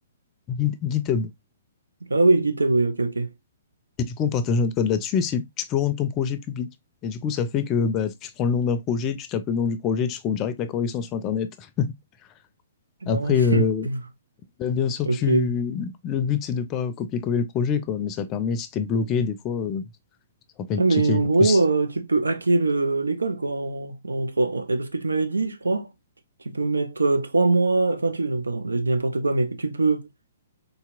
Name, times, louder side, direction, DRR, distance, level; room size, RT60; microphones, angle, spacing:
voice 1, 0.5-1.3 4.1-6.7 7.0-11.9 13.1-13.9 14.6-19.9 20.6-20.8 21.1-21.6, left 6 dB, 30° left, 0.5 m, -25 dB
voice 2, 2.1-3.3 13.0-14.0 14.7-15.5 20.8-25.9 26.4-30.1, right 3 dB, 85° right, 0.6 m, -23 dB
4.0 x 2.8 x 2.4 m
figure-of-eight pair, 125°, 0 cm